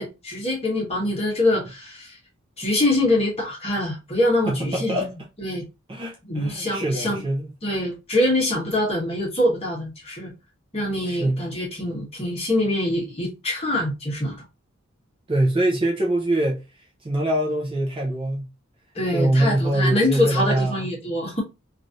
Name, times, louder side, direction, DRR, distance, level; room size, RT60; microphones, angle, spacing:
voice 1, 0.0-2.2 2.6-5.0 5.4-5.6 6.3-7.2 7.6-10.3 10.7-14.4 18.9-21.4, left 1 dB, 30° left, 1.3 m, -24 dB
voice 2, 4.5-5.1 5.9-7.5 11.1-11.4 15.3-16.6 17.0-18.5 19.1-20.8, right 1 dB, 25° right, 0.6 m, -23 dB
3.1 x 2.6 x 2.6 m
head